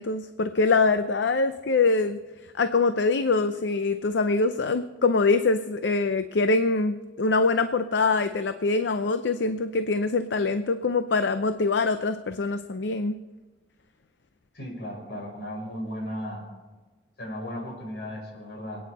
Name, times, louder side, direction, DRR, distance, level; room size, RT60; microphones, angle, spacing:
voice 1, 0.0-2.2 2.5-13.2, left 3 dB, 85° left, 9 dB, 0.6 m, -24 dB
voice 2, 14.5-16.4 17.2-18.9, equal, 70° left, -1 dB, 5.5 m, -35 dB
26.0 x 9.5 x 4.2 m, 1.2 s
head